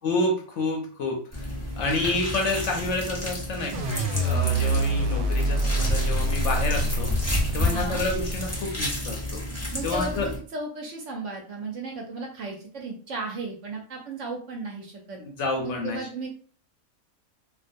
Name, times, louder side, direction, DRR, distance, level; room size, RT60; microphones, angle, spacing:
voice 1, 0.0-1.5 1.8-9.4 9.8-10.3 15.2-16.0, left 2 dB, 65° left, 1 dB, 0.8 m, -29 dB
sound 1, 1.3-10.4, left 1 dB, 20° left, 0.4 m, -31 dB
sound 2, 3.7-8.8, right 1 dB, 90° right, 1.1 m, -26 dB
voice 2, 7.7-8.0 9.7-15.2 15.6-16.3, right 3 dB, 65° right, 0 dB, 0.8 m, -35 dB
2.4 x 2.2 x 2.5 m, 0.43 s
omnidirectional pair, 1.5 m